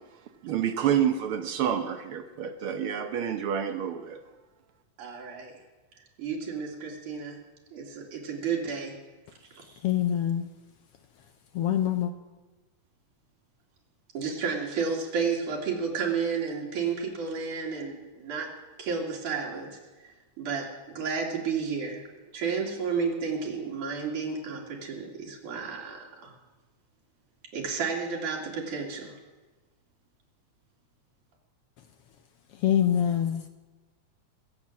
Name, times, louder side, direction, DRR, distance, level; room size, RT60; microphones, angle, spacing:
voice 1, 0.4-4.2, right 9 dB, 65° right, 7 dB, 1.3 m, -28 dB
voice 2, 5.0-5.5 6.2-7.4 7.7-8.9 9.5-9.7 14.1-18.5 18.8-19.8 20.4-20.7 21.0-22.0 22.3-26.3 27.5-29.1, right 5 dB, 85° right, -2 dB, 3.9 m, -31 dB
voice 3, 9.8-10.5 11.5-12.1 32.6-33.5, left 10 dB, 80° left, 8 dB, 1.3 m, -24 dB
22.5 x 7.7 x 7.3 m, 1.2 s
omnidirectional pair, 3.4 m